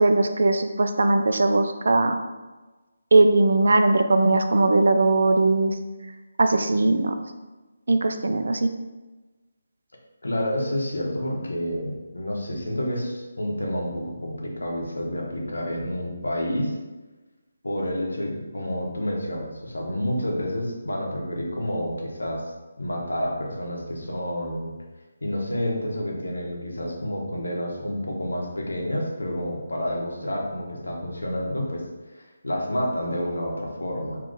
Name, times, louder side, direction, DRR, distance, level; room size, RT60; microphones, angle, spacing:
voice 1, 0.0-2.2 3.1-5.7 6.4-7.1 7.9-8.7, right 2 dB, 65° right, 8 dB, 0.3 m, -19 dB
voice 2, 10.2-16.7 17.6-22.4 22.8-24.7 25.2-31.8 32.1-34.2, equal, 80° left, -1 dB, 0.8 m, -29 dB
2.8 x 2.4 x 3.7 m, 1.2 s
figure-of-eight pair, 150°, 0 cm